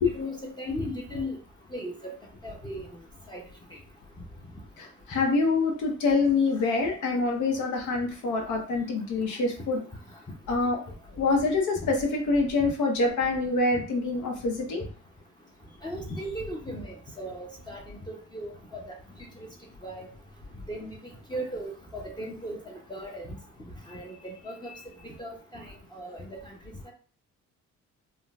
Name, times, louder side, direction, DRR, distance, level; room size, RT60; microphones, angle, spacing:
voice 1, 0.1-1.4 1.7-2.1 2.4-2.8 3.3-3.4 12.6-12.7 15.8-18.9 19.4-19.5 19.8-20.1 20.7-21.0 21.3-23.4 23.9-24.7 25.0-26.5 26.9-27.0, equal, 15° left, -2 dB, 0.6 m, -37 dB
voice 2, 4.8-9.8 10.5-10.8 11.1-14.8, left 3 dB, 75° left, 2 dB, 0.9 m, -26 dB
3.7 x 2.2 x 2.3 m, 0.41 s
cardioid pair, 90°, 30 cm